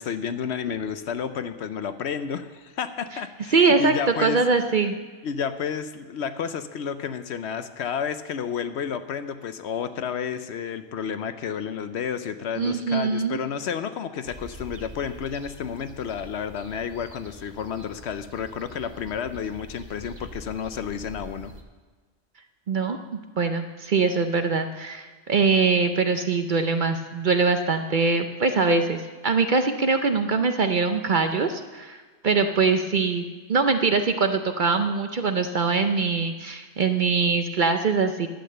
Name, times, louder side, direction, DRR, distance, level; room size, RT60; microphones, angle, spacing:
voice 1, 0.0-4.4 5.2-21.5, left 7 dB, 65° left, 11 dB, 0.8 m, -31 dB
voice 2, 3.5-3.9 4.2-5.0 12.6-13.4 22.7-23.0 23.4-38.3, right 4 dB, 50° right, 7 dB, 0.6 m, -23 dB
sound 1, 14.2-21.6, right 1 dB, 35° right, 1.2 m, -45 dB
11.5 x 8.4 x 6.7 m, 1.4 s
omnidirectional pair, 1.4 m